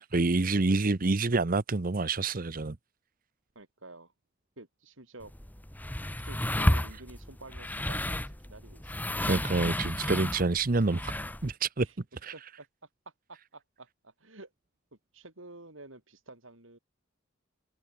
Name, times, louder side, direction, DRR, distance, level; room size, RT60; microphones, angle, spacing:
voice 1, 0.1-2.8 9.3-11.1 11.4-11.9 12.2-12.3, right 3 dB, 45° right, 0.8 m, -27 dB
voice 2, 3.6-4.1 4.6-5.3 6.2-9.4 11.8-11.9 12.3-12.7 13.3-14.5 15.1-16.8, right 2 dB, 80° right, 5.6 m, -50 dB
sound 1, 5.2-11.5, left 1 dB, 10° left, 1.8 m, -32 dB
head